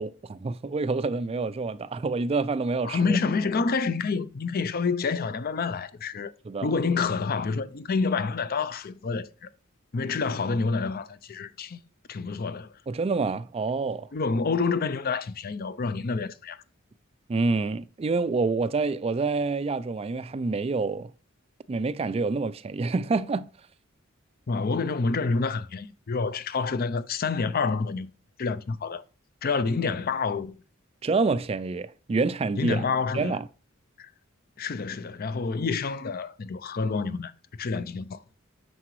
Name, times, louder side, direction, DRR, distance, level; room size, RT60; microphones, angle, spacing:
voice 1, 0.0-3.2 6.5-6.7 12.9-14.1 17.3-21.1 21.7-23.5 31.0-32.8 33.1-33.5, right 3 dB, 30° right, 0.4 m, -27 dB
voice 2, 2.8-6.3 6.6-9.5 9.9-11.8 12.1-12.7 14.1-16.6 24.5-28.1 28.4-29.0 29.4-30.6 32.6-33.4 34.0-34.1 34.6-37.3 37.6-38.2, left 4 dB, 45° left, 0.5 m, -28 dB
9.5 x 6.8 x 3.1 m
head